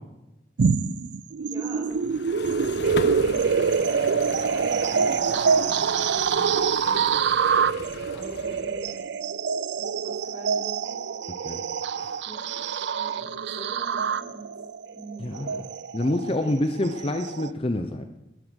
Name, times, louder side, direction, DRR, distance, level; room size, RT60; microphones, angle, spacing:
sound 1, 0.6-17.5, right 6 dB, 70° right, 0.4 m, -25 dB
voice 1, 1.3-2.3 3.1-3.7 4.5-6.5 6.8-7.3 8.1-9.1 9.7-10.9 12.3-12.6 12.9-14.5 14.9-15.6 16.1-16.5, right 1 dB, 20° right, -3 dB, 5.6 m, -43 dB
sound 2, 1.9-8.9, left 2 dB, 65° left, 1.2 m, -38 dB
voice 2, 15.2-15.6 15.9-18.1, left 1 dB, 30° left, 7 dB, 0.6 m, -27 dB
13.0 x 11.0 x 6.4 m, 0.97 s
head